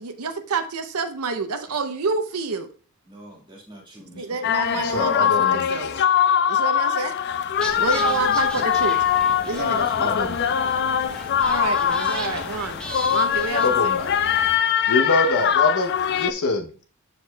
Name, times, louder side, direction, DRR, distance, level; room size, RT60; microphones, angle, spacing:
voice 1, 0.0-2.7 4.2-5.9 6.5-7.1 7.8-9.0 9.4-9.8 11.4-12.8 13.1-14.0, right 4 dB, 80° right, 9 dB, 0.7 m, -28 dB
voice 2, 3.1-4.5 7.8-8.4 9.5-10.2, right 1 dB, 20° right, -1 dB, 1.7 m, -41 dB
sound 1, 4.4-16.3, left 8 dB, 50° left, 0.4 m, -22 dB
voice 3, 4.8-6.0 10.0-10.5 13.6-14.1 14.9-16.8, left 2 dB, 75° left, 5 dB, 0.9 m, -25 dB
sound 2, 7.6-14.6, equal, 5° left, 0.9 m, -37 dB
6.9 x 6.5 x 2.2 m, 0.38 s
head